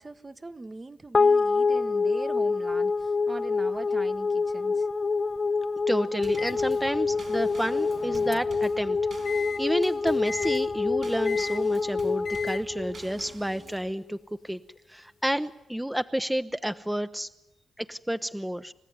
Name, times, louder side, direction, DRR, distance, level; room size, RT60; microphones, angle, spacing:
voice 1, 0.0-4.9, right 2 dB, 30° right, 1.1 m, -40 dB
sound 1, 1.1-13.7, left 4 dB, 45° left, 0.8 m, -26 dB
voice 2, 5.9-9.0 9.3-14.2 14.4-14.6 14.9-17.3 17.8-18.7, equal, 5° right, 0.8 m, -30 dB
Drum kit / Snare drum / Bass drum, 6.2-13.9, right 4 dB, 60° right, 4.3 m, -48 dB
Microwave oven, 6.4-8.7 9.3-9.6 10.3-10.6 11.3-11.6 12.3-12.6, left 5 dB, 70° left, 1.3 m, -38 dB
30.0 x 14.5 x 9.4 m
supercardioid pair, 45°, 0 cm